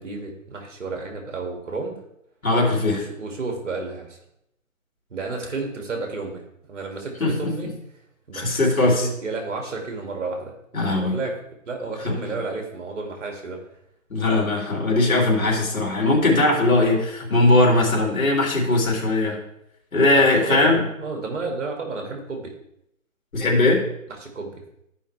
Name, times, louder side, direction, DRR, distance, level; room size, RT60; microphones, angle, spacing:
voice 1, 0.0-2.0 2.9-4.2 5.1-6.4 6.7-7.7 8.3-11.4 11.7-13.6 20.1-22.5 24.2-24.6, right 3 dB, 60° right, 2 dB, 2.5 m, -32 dB
voice 2, 2.4-3.0 7.2-7.7 8.3-9.1 10.7-11.2 12.1-12.2 14.1-19.4 19.9-20.8 23.3-23.8, left 2 dB, 80° left, -1 dB, 3.4 m, -20 dB
14.5 x 5.5 x 3.4 m, 0.78 s
hypercardioid pair, 170°, 41 cm